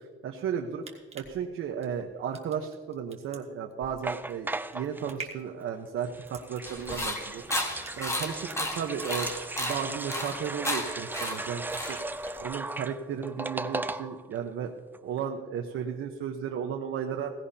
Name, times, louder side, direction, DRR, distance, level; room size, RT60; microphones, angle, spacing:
voice 1, 0.2-0.8 1.1-7.4 8.0-9.3 9.6-14.7 15.0-17.3, right 7 dB, 90° right, 2 dB, 1.1 m, -34 dB
sound 1, 0.6-9.6 9.9-10.6 10.9-11.6 12.0-12.1, right 5 dB, 30° right, 1.5 m, -47 dB
sound 2, 4.0-5.2 6.0-14.4 14.7-14.8 14.9-15.2, right 2 dB, 10° right, 0.3 m, -37 dB
sound 3, 6.7-12.4, left 1 dB, 15° left, 1.5 m, -34 dB
17.5 x 16.0 x 2.8 m, 1.5 s
cardioid pair, 155°, 21 cm